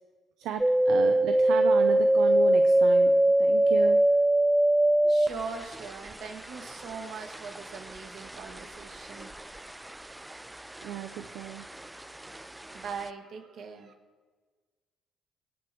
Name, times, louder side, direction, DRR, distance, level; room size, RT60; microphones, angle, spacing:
voice 1, 0.4-4.0 10.8-11.7, right 10 dB, 80° right, 7 dB, 0.6 m, -34 dB
sound 1, 0.6-10.0 10.3-11.1 11.5-12.4 12.8-12.9, right 1 dB, 10° right, 0.4 m, -23 dB
voice 2, 5.0-10.3 12.7-13.9, right 5 dB, 60° right, 4 dB, 1.8 m, -41 dB
24.0 x 8.6 x 3.1 m, 1.4 s
cardioid pair, 95°, 0 cm